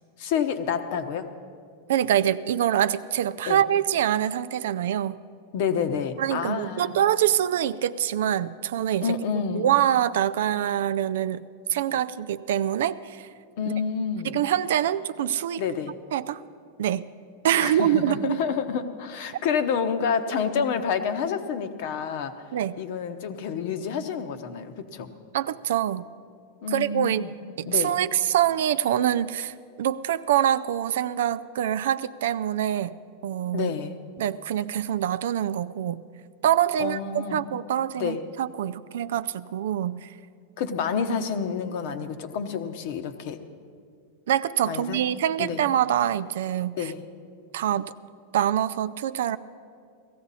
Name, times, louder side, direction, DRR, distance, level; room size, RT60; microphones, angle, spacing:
voice 1, 0.2-1.3 3.5-3.6 5.5-7.0 9.0-9.7 13.6-14.3 15.6-15.9 17.6-22.3 22.8-25.1 26.6-27.3 27.7-27.9 33.5-34.0 36.8-37.4 38.0-38.2 40.6-43.4 44.7-45.0 45.4-45.6 46.8-47.0, left 6 dB, 60° left, 8 dB, 1.0 m, -28 dB
voice 2, 1.9-5.2 6.2-9.1 9.5-11.4 11.7-13.3 13.7-13.8 14.2-15.6 16.1-16.4 16.8-17.0 17.4-18.4 22.5-22.8 25.3-26.1 26.7-27.2 27.6-32.9 33.2-33.7 34.2-36.0 36.4-40.1 44.3-46.9 47.5-47.9 48.3-49.4, right 11 dB, 75° right, 14 dB, 0.4 m, -25 dB
17.0 x 14.0 x 4.1 m, 2.2 s
hypercardioid pair, 125°, 0 cm